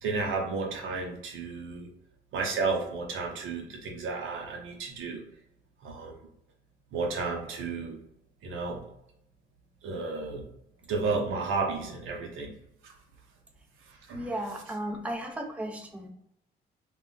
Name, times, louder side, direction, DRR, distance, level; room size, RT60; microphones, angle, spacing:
voice 1, 0.0-1.9 2.3-5.2 5.8-6.1 6.9-8.0 8.4-8.8 9.8-10.4 10.9-12.5 12.8-12.9 14.1-14.3, right 4 dB, 85° right, 1 dB, 0.7 m, -32 dB
voice 2, 14.1-16.1, right 1 dB, 5° right, 3 dB, 0.4 m, -35 dB
2.2 x 2.1 x 3.7 m, 0.78 s
cardioid pair, 90°, 20 cm